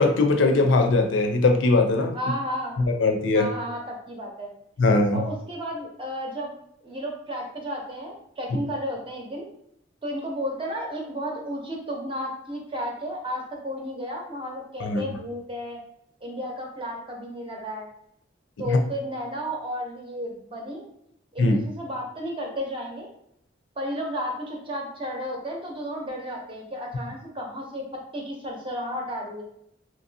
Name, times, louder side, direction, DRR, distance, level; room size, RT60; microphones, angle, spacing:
voice 1, 0.0-2.2 2.8-3.5 4.8-5.2 14.8-15.0 18.7-18.8 21.4-21.6, left 3 dB, 75° left, 5 dB, 0.5 m, -20 dB
voice 2, 2.1-2.8 3.3-4.5 4.8-4.9 5.1-6.5 6.8-9.5 10.0-15.8 16.2-17.9 18.6-20.8 21.3-23.1 23.8-27.8 28.1-29.4, equal, 30° right, 0 dB, 0.7 m, -33 dB
2.9 x 2.5 x 2.7 m, 0.74 s
head